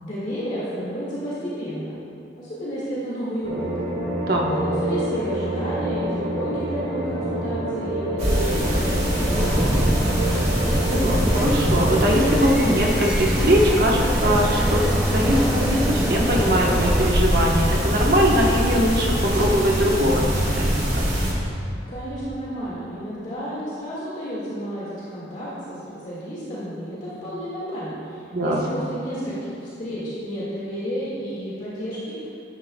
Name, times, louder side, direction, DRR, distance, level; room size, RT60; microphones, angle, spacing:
voice 1, 0.0-1.9 2.4-3.7 4.5-10.2 21.9-32.2, equal, 40° left, -9 dB, 1.9 m, -31 dB
sound 1, 3.4-12.8, right 1 dB, 90° right, 1.6 m, -27 dB
voice 2, 4.2-4.5 10.8-14.8 15.1-20.2 20.5-21.0 28.3-28.6, equal, 55° right, -1 dB, 1.1 m, -21 dB
sound 2, 8.2-21.3, equal, 35° right, 1.8 m, -23 dB
sound 3, 9.5-17.1, equal, 5° right, 0.4 m, -27 dB
10.5 x 9.3 x 2.3 m, 2.6 s
head